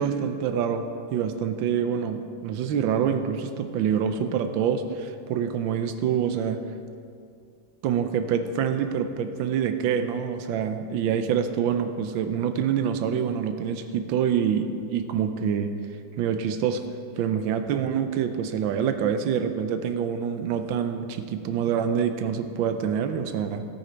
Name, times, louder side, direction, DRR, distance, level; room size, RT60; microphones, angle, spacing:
voice 1, 0.0-6.6 7.8-15.7 16.2-16.8 17.2-23.6, right 8 dB, 80° right, 8 dB, 1.4 m, -26 dB
14.5 x 9.0 x 4.5 m, 2.4 s
omnidirectional pair, 2.1 m